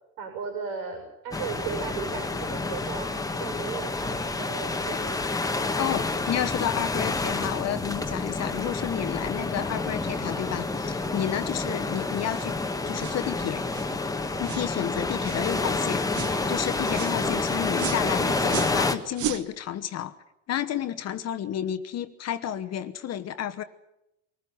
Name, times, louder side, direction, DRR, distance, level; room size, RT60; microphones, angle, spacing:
voice 1, 0.2-5.2 11.6-11.8 14.9-15.1, right 6 dB, 75° right, 4 dB, 6.9 m, -36 dB
sound 1, 1.3-19.0, left 3 dB, 10° left, 1.3 m, -29 dB
voice 2, 5.8-12.6 12.9-13.7 14.4-16.0 16.5-20.1 20.5-23.6, left 10 dB, 40° left, 10 dB, 1.2 m, -31 dB
sound 2, 12.3-12.5 13.0-13.2 13.7-13.9 14.4-14.7 15.2-15.5 16.1-16.4 16.9-17.2 17.8-18.0 18.5-18.8 19.1-19.5, right 11 dB, 50° right, 1.3 m, -34 dB
24.0 x 14.5 x 9.5 m, 0.87 s
supercardioid pair, 115°, 38 cm